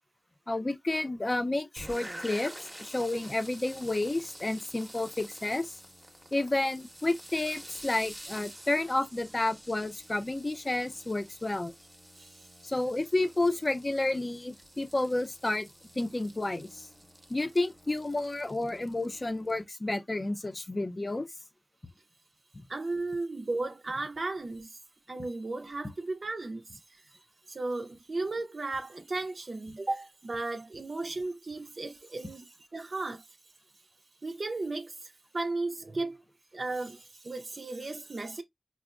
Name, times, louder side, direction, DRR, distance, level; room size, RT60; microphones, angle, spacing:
voice 1, 0.5-2.5 2.8-5.8 6.3-11.7 12.6-15.7 16.0-16.9 17.3-21.3 22.5-22.7, left 2 dB, 40° left, 0.5 m, -30 dB
sound 1, 1.8-19.6, equal, 10° right, 0.7 m, -49 dB
voice 2, 22.7-24.8 25.1-27.0 27.5-33.3 34.2-36.2 36.5-38.4, right 2 dB, 65° right, 0.4 m, -35 dB
5.0 x 2.0 x 2.3 m
wide cardioid pair, 75°, 0 cm